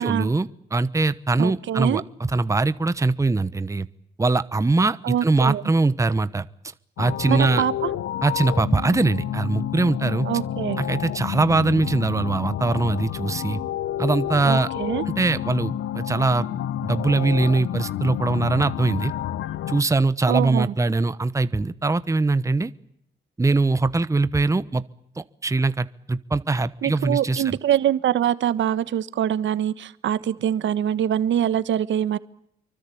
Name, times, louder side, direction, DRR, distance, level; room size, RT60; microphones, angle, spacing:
voice 1, 0.0-2.0 2.3-3.9 4.2-6.5 7.0-7.6 8.2-10.3 10.8-13.6 14.0-14.7 15.1-16.5 16.8-19.1 19.7-22.7 23.4-24.8 25.2-27.6, right 3 dB, 15° right, 14 dB, 1.0 m, -22 dB
voice 2, 1.4-2.0 5.0-5.6 7.3-7.9 10.2-10.8 14.4-15.0 20.3-20.7 26.8-32.2, right 10 dB, 70° right, 14 dB, 1.4 m, -24 dB
sound 1, 7.0-19.8, left 11 dB, 75° left, 1.1 m, -29 dB
27.5 x 24.0 x 8.6 m, 0.73 s
cardioid pair, 90°, 20 cm